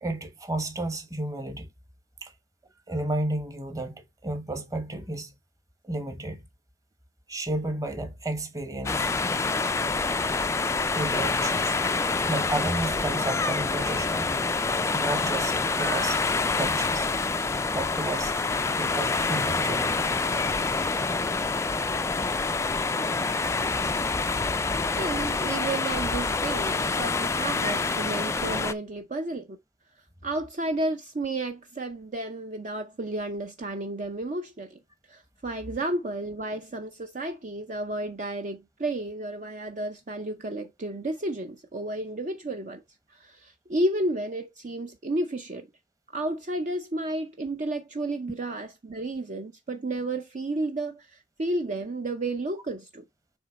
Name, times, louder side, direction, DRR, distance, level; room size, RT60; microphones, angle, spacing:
voice 1, 0.0-1.7 2.2-2.3 2.9-5.3 5.8-6.4 7.3-9.1 10.9-11.8 12.3-14.3 14.9-16.2 16.5-17.1 17.7-18.4 18.8-20.1 23.9-24.1, right 2 dB, 20° right, 1.0 m, -32 dB
sound 1, 8.9-28.7, left 3 dB, 15° left, 0.3 m, -27 dB
voice 2, 25.0-29.6 30.0-42.8 43.1-45.7 46.1-53.0, right 2 dB, 40° right, 0.6 m, -32 dB
7.2 x 3.0 x 5.1 m
head